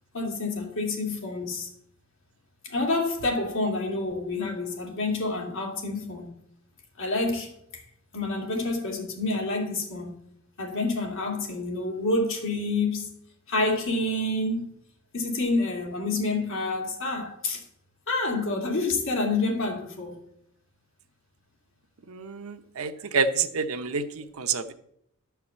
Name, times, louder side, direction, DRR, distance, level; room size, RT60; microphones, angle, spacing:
voice 1, 0.1-1.7 2.6-6.3 7.0-7.8 8.1-10.1 10.6-13.1 13.5-14.8 15.1-17.6 18.1-20.2, left 2 dB, 65° left, 2.4 m, -28 dB
voice 2, 22.1-24.7, right 5 dB, 75° right, 0.8 m, -28 dB
12.0 x 4.8 x 7.3 m
head